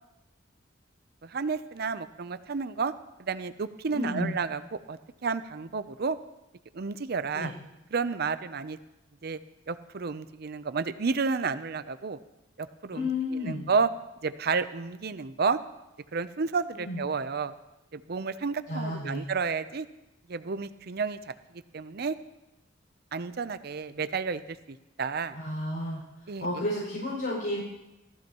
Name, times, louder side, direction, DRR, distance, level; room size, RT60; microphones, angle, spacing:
voice 1, 1.2-2.9 3.2-6.2 6.7-7.5 7.9-8.8 9.2-9.4 9.7-12.2 12.6-13.9 14.2-15.6 16.1-17.5 17.9-19.9 20.3-21.2 21.7-22.2 23.1-25.4 26.3-26.5, right 5 dB, 55° right, 13 dB, 0.6 m, -31 dB
voice 2, 3.9-4.4 7.3-7.5 12.9-13.7 16.8-17.0 18.7-19.3 25.3-26.0 26.4-27.6, left 2 dB, 65° left, -6 dB, 5.7 m, -32 dB
18.5 x 14.5 x 3.0 m, 0.97 s
head